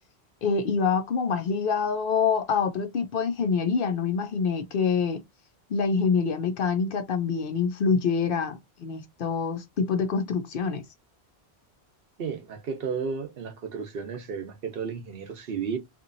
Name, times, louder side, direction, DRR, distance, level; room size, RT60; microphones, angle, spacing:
voice 1, 0.4-5.2 5.7-10.8, left 5 dB, 60° left, 0.7 m, -26 dB
voice 2, 12.2-15.8, right 6 dB, 65° right, 0.8 m, -33 dB
2.9 x 2.5 x 2.5 m
omnidirectional pair, 1.1 m